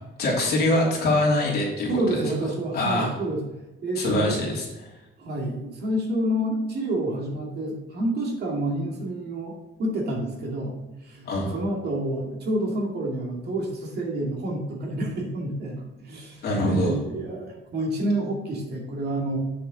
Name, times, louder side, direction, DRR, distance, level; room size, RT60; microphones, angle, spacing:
voice 1, 0.2-2.2 2.7-3.1 3.9-4.9 11.2-11.5 16.4-16.9, left 1 dB, 50° left, -4 dB, 3.1 m, -24 dB
voice 2, 1.9-3.4 3.8-4.4 5.2-9.5 9.8-10.7 11.0-19.4, right 1 dB, 50° right, 0 dB, 2.2 m, -28 dB
8.2 x 6.7 x 3.8 m, 1.0 s
cardioid pair, 155°, 21 cm